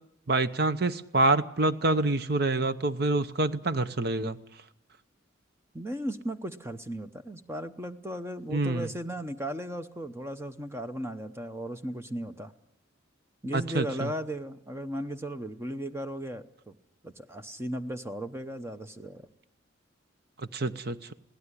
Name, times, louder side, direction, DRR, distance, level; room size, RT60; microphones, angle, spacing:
voice 1, 0.3-4.4 8.5-8.9 13.5-14.1 20.5-21.1, right 2 dB, 50° right, 0.9 m, -26 dB
voice 2, 5.7-12.5 13.4-16.8 17.0-19.3, equal, 15° right, 0.8 m, -36 dB
22.0 x 17.0 x 9.8 m
head